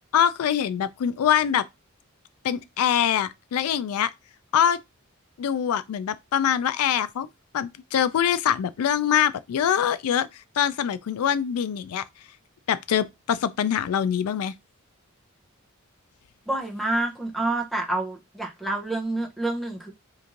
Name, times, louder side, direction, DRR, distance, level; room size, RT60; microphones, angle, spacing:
voice 1, 0.1-1.6 2.4-4.1 4.5-4.8 5.4-7.3 7.5-10.3 10.6-12.0 12.7-14.5, left 9 dB, 90° left, 0.3 m, -24 dB
voice 2, 16.5-19.9, right 2 dB, ahead, 0.6 m, -28 dB
3.0 x 2.5 x 3.7 m
head